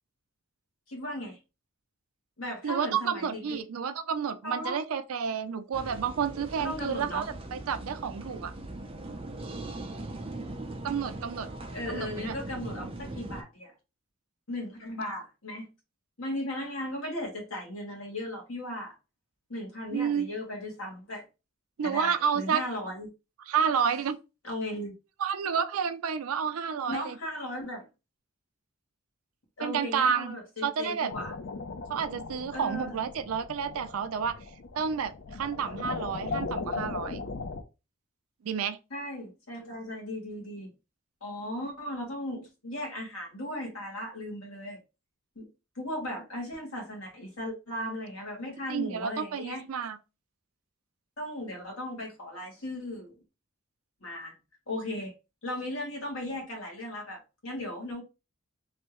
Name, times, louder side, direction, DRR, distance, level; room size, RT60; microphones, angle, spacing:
voice 1, 0.9-1.4 2.4-3.6 4.4-4.8 6.6-7.3 11.7-13.7 14.5-15.7 16.2-18.9 19.5-21.2 21.8-23.1 24.4-24.9 26.9-27.9 29.6-31.3 32.5-33.0 38.9-40.7 41.2-44.8 45.3-45.5 45.7-49.6 51.2-53.2 54.0-54.3 54.7-55.1 55.4-58.0, left 1 dB, 75° left, 1.5 m, -37 dB
voice 2, 2.6-7.3 7.5-8.5 10.8-11.5 11.9-12.3 19.9-20.3 21.8-22.6 23.5-24.2 25.2-27.1 29.6-31.1 31.9-34.4 34.7-37.2 38.4-38.8 48.7-50.0, right 7 dB, 80° right, 0.4 m, -30 dB
sound 1, 5.7-13.4, right 2 dB, 25° right, 0.5 m, -40 dB
sound 2, 31.1-37.6, left 4 dB, 55° left, 0.5 m, -38 dB
3.3 x 2.7 x 3.0 m
head